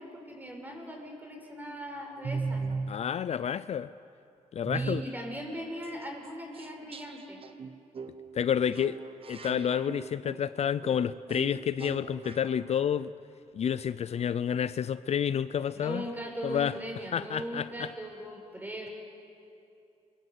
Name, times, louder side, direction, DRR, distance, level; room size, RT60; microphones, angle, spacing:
voice 1, 0.0-2.6 4.7-7.4 15.7-18.9, equal, 15° right, 1 dB, 6.4 m, -39 dB
sound 1, 2.2-3.0 4.6-5.1 5.8-5.9 6.2-6.3 6.5-12.7, right 4 dB, 45° right, 1.3 m, -38 dB
voice 2, 2.9-3.9 4.5-5.0 8.3-9.0 9.3-13.1 13.5-16.1 16.4-16.8 17.1-17.9, left 8 dB, 55° left, 15 dB, 0.6 m, -29 dB
29.0 x 23.0 x 8.2 m, 2.6 s
cardioid pair, 100°, 13 cm